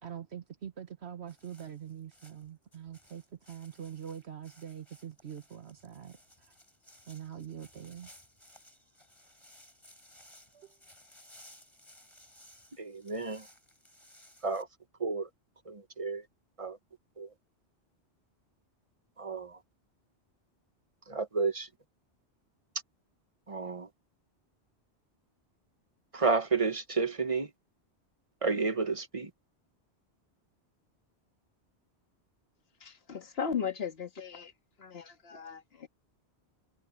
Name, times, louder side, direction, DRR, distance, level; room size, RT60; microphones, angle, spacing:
voice 1, 0.0-6.2 7.1-8.1 10.5-10.8, right 9 dB, 70° right, 1.3 m, -44 dB
sound 1, 1.3-14.6, left 1 dB, 25° left, 7.0 m, -59 dB
voice 2, 12.8-13.5 14.4-14.7 15.0-15.3 15.7-16.2 16.6-16.8 17.2-17.3 19.2-19.6 21.1-21.7 23.5-23.9 26.1-27.5 28.4-29.3, right 4 dB, 30° right, 1.0 m, -31 dB
voice 3, 32.8-34.5 34.8-35.9, left 7 dB, 60° left, 1.8 m, -37 dB
omnidirectional pair, 1.2 m